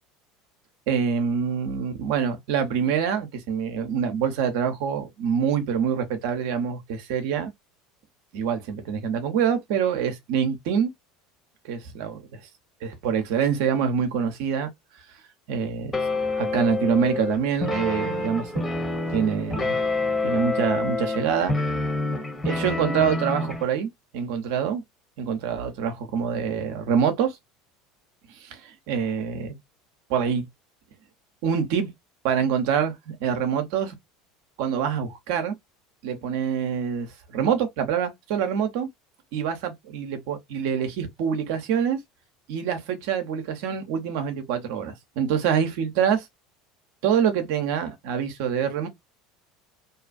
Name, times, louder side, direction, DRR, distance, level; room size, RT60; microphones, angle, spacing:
voice 1, 0.9-7.5 8.3-10.9 11.6-12.2 12.8-14.7 15.5-15.9 16.4-18.6 19.1-19.8 20.2-21.5 22.4-24.8 25.2-27.4 28.4-29.6 30.1-30.5 31.4-31.9 32.2-34.0 34.6-35.5 36.0-38.9 39.3-42.0 42.5-46.3 47.0-48.9, right 7 dB, 65° right, 0.7 m, -25 dB
sound 1, 15.9-23.7, left 2 dB, 20° left, 1.1 m, -27 dB
2.7 x 2.4 x 2.4 m
hypercardioid pair, 75°, 0 cm